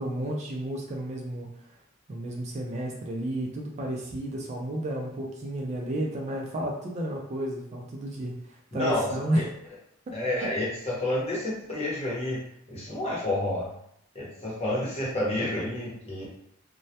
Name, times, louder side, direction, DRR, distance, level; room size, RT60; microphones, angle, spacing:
voice 1, 0.0-1.5 2.1-9.5 10.1-10.5, right 1 dB, 35° right, 0 dB, 0.3 m, -32 dB
voice 2, 8.7-9.1 9.3-9.4 10.1-12.4 12.7-13.7 14.1-16.3, left 1 dB, 30° left, -5 dB, 0.8 m, -29 dB
2.1 x 2.1 x 2.7 m, 0.74 s
head